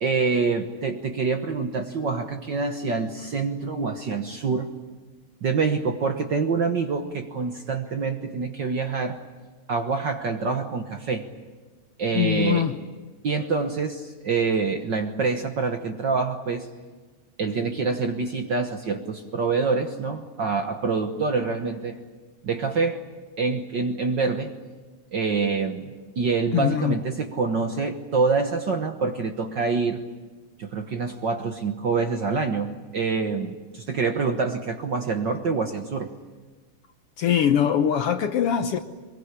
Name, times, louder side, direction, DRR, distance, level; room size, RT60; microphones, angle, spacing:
voice 1, 0.0-4.7 5.4-9.2 9.7-11.3 12.0-12.7 13.2-16.7 17.4-22.0 22.4-23.0 23.4-24.5 25.1-25.9 26.2-30.0 30.6-36.1, right 4 dB, 50° right, 5 dB, 1.4 m, -26 dB
voice 2, 12.1-12.8 26.5-27.0 37.2-38.8, left 9 dB, 65° left, 8 dB, 1.6 m, -22 dB
24.0 x 22.5 x 9.9 m, 1.4 s
omnidirectional pair, 3.3 m